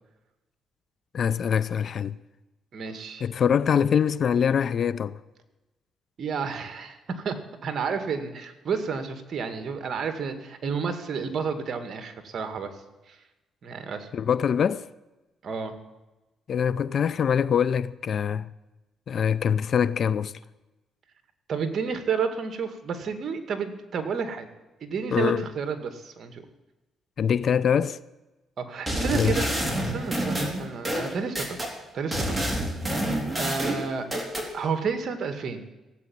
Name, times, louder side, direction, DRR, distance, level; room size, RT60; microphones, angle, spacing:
voice 1, 1.1-2.1 3.2-5.2 14.1-14.9 16.5-18.5 19.1-20.3 25.1-25.5 27.2-28.0 29.1-29.5, left 7 dB, 55° left, 0.6 m, -24 dB
voice 2, 2.7-3.2 6.2-12.8 13.1-13.2 13.6-14.1 15.4-15.8 21.5-24.5 24.8-26.4 28.6-29.5 29.8-31.6 31.9-32.4 33.0-34.1 34.5-35.7, right 5 dB, 55° right, 2.1 m, -31 dB
sound 1, 28.9-31.7 32.1-34.5, right 1 dB, 10° right, 3.7 m, -28 dB
16.5 x 8.3 x 9.4 m
cardioid pair, 90°, 0 cm